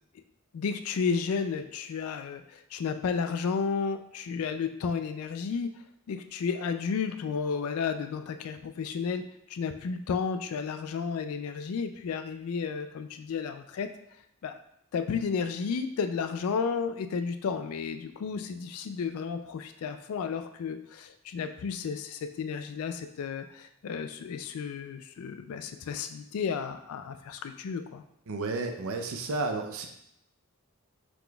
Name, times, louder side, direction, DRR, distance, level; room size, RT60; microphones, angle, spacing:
voice 1, 0.5-2.4 2.7-5.8 6.1-9.2 9.5-13.9 14.4-14.5 14.9-28.0, left 5 dB, 90° left, 8 dB, 0.3 m, -32 dB
voice 2, 28.3-29.9, right 3 dB, 80° right, 4 dB, 0.5 m, -32 dB
5.9 x 3.8 x 2.3 m, 0.76 s
head